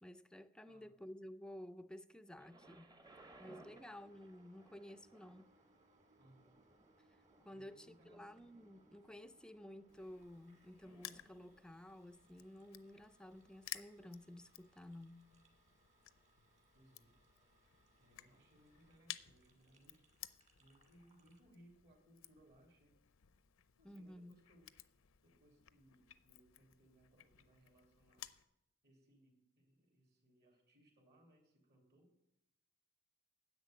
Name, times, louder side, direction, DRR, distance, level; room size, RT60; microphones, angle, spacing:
voice 1, 0.0-3.0 3.4-5.5 7.4-15.3 23.8-24.3, left 1 dB, 5° left, 0.4 m, -53 dB
Thunder, 2.4-14.2 15.0-15.1, right 2 dB, 20° right, 0.8 m, -66 dB
sound 1, 3.0-21.4, right 2 dB, 35° right, 1.9 m, -73 dB
voice 2, 3.7-4.0 6.2-6.6 7.5-8.5 16.3-16.4 16.7-17.2 18.0-20.0 20.6-23.0 23.8-25.0 25.2-28.3 28.8-32.1, right 1 dB, 55° right, 2.8 m, -68 dB
Crushing, 9.9-28.4, left 13 dB, 80° left, 0.6 m, -56 dB
10.5 x 7.6 x 9.1 m
head